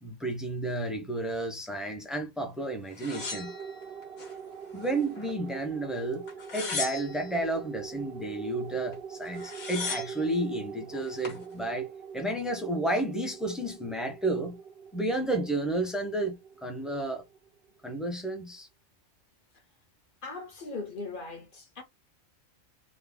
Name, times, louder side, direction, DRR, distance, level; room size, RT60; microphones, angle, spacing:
voice 1, 0.0-3.5 4.7-6.2 6.5-14.6 14.9-17.2 17.8-18.7, right 2 dB, ahead, 0.4 m, -32 dB
sound 1, 3.0-4.3 4.8-5.5 6.3-7.4 8.9-9.0 9.2-10.2 10.9-11.4, left 4 dB, 80° left, 1.7 m, -37 dB
sound 2, 3.1-17.9, right 6 dB, 60° right, 0.6 m, -44 dB
voice 2, 20.2-21.8, left 3 dB, 45° left, 0.8 m, -39 dB
3.7 x 2.2 x 3.4 m
omnidirectional pair, 1.4 m